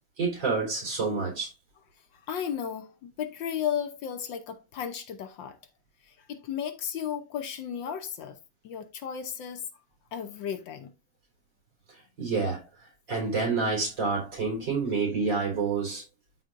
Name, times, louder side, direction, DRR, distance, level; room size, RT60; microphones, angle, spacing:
voice 1, 0.2-1.5 11.9-12.6 13.1-16.0, right 4 dB, 60° right, 4.6 m, -28 dB
voice 2, 2.3-5.6 6.3-8.4 8.6-9.7 10.1-10.9, left 8 dB, 70° left, 1.5 m, -34 dB
13.0 x 4.3 x 2.6 m
omnidirectional pair, 2.2 m